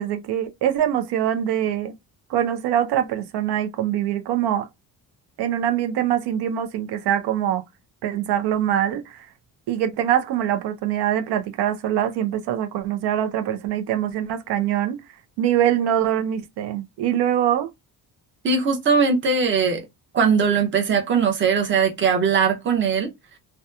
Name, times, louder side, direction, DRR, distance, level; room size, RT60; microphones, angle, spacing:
voice 1, 0.0-1.9 2.3-4.7 5.4-7.6 8.0-9.3 9.7-15.0 15.4-17.7, right 10 dB, 85° right, 0.5 m, -23 dB
voice 2, 18.4-19.8 20.1-23.1, right 5 dB, 30° right, 0.6 m, -20 dB
2.8 x 2.2 x 2.2 m
cardioid pair, 135°, 40 cm